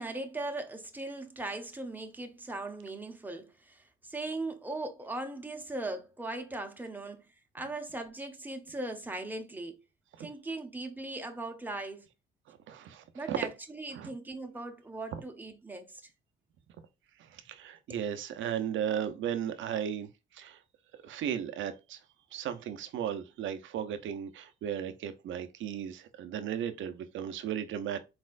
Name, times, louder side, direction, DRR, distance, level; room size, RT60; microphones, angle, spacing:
voice 1, 0.0-7.2 7.5-9.8 10.2-12.1 13.1-16.0 17.9-18.0, right 2 dB, 10° right, 1.0 m, -39 dB
voice 2, 12.5-13.4 13.9-14.1 15.1-15.2 17.2-20.1 20.3-20.6 21.0-22.0 22.3-28.0, right 9 dB, 75° right, 0.7 m, -35 dB
4.3 x 4.2 x 2.5 m
cardioid pair, 90°, 20 cm